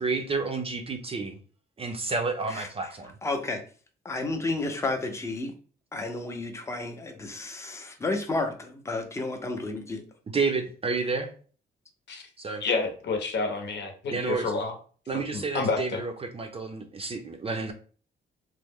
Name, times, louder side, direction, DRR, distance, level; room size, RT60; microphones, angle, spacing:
voice 1, 0.0-1.4 1.8-3.1 10.3-11.3 12.4-12.6 14.1-14.5 15.1-17.7, right 4 dB, 30° right, 5 dB, 0.5 m, -30 dB
voice 2, 2.5-2.9 3.2-3.6 4.0-5.5 5.9-10.0, left 2 dB, 15° left, 4 dB, 0.6 m, -32 dB
voice 3, 12.6-14.7 15.1-16.0, left 4 dB, 60° left, 4 dB, 0.9 m, -29 dB
3.1 x 2.1 x 3.5 m, 0.40 s
cardioid pair, 110°, 20 cm